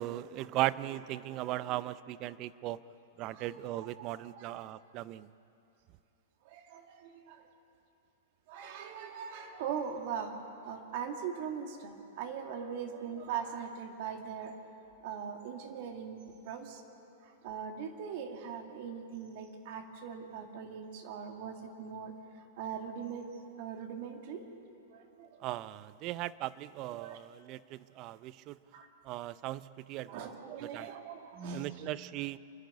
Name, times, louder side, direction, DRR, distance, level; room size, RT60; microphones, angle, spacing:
voice 1, 0.0-2.8 3.2-5.3 25.4-28.6 29.0-30.9 31.5-32.4, right 15 dB, 40° right, 17 dB, 0.5 m, -38 dB
voice 2, 3.3-4.5 6.5-7.1 8.5-10.3 10.6-14.5 15.0-16.2 16.5-16.8 17.4-22.1 22.6-23.2 23.6-24.4 25.2-25.3 27.0-27.2 28.7-28.8 30.0-31.7, right 7 dB, 55° right, 4 dB, 2.2 m, -40 dB
27.0 x 10.5 x 9.6 m, 2.8 s
hypercardioid pair, 130°, 0 cm